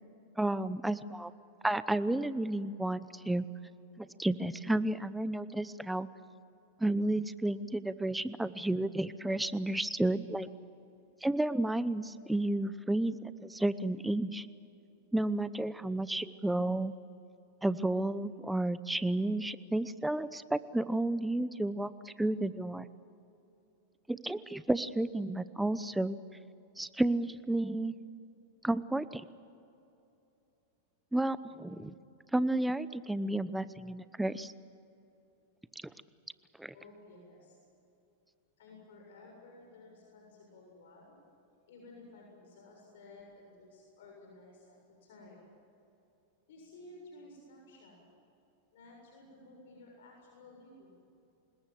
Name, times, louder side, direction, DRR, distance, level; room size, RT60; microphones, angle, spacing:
voice 1, 0.4-1.3 1.6-3.4 4.0-6.1 6.8-10.5 11.2-14.5 15.1-16.9 17.6-22.9 24.1-26.2 26.8-27.9 28.6-29.2 31.1-31.9 32.3-34.5 35.8-35.9 36.6-36.7, right 1 dB, 5° right, 15 dB, 0.9 m, -32 dB
voice 2, 36.7-37.6 38.6-41.2 41.7-45.4 46.5-48.0 48.7-51.0, left 2 dB, 70° left, 0 dB, 7.1 m, -54 dB
26.5 x 21.0 x 7.7 m, 2.9 s
hypercardioid pair, 115°, 0 cm